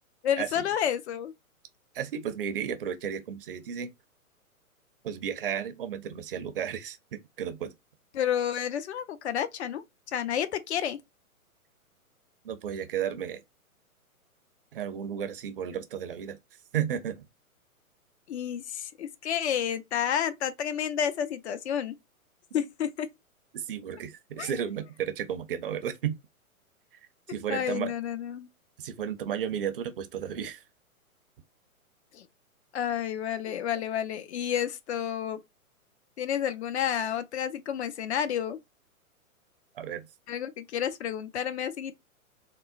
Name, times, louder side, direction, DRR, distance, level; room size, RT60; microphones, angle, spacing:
voice 1, 0.2-1.3 8.1-9.8 10.1-11.0 18.3-21.9 22.5-23.1 24.4-24.5 27.5-28.5 32.1-32.2 32.7-35.4 36.2-38.6 40.3-42.0, left 9 dB, 50° left, 0.6 m, -30 dB
voice 2, 1.9-3.9 5.0-7.7 12.4-13.4 14.7-16.4 16.7-17.2 22.5-22.7 23.5-26.1 27.3-27.9 28.8-30.6 33.5-33.6 39.8-40.1, right 8 dB, 40° right, 0.5 m, -33 dB
3.6 x 2.0 x 2.4 m
figure-of-eight pair, 120°, 43 cm